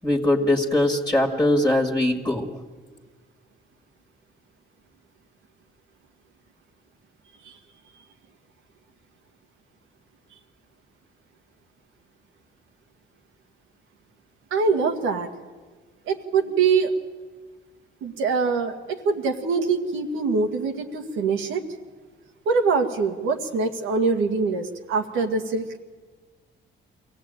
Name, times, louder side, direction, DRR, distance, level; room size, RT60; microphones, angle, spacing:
voice 1, 0.0-2.5, left 1 dB, 10° left, 1 dB, 2.1 m, -21 dB
voice 2, 14.5-15.3 16.1-16.9 18.0-21.6 22.5-25.7, right 4 dB, 85° right, 4 dB, 2.0 m, -24 dB
23.5 x 16.5 x 9.0 m, 1.4 s
cardioid pair, 90°, 20 cm